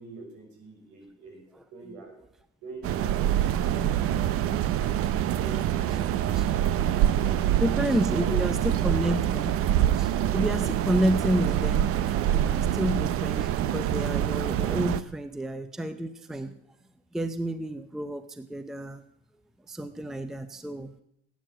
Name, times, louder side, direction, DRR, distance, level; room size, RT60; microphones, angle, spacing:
voice 1, 0.0-1.4 1.7-2.2 2.6-4.8 5.2-7.6 8.0-9.1, right 3 dB, 65° right, 3 dB, 6.0 m, -45 dB
sound 1, 2.8-15.0, right 11 dB, 45° right, 0.8 m, -25 dB
voice 2, 7.6-9.5 10.0-16.5 17.1-19.0 19.7-20.9, equal, ahead, 10 dB, 0.6 m, -30 dB
18.0 x 9.4 x 7.6 m, 0.75 s
cardioid pair, 145°, 31 cm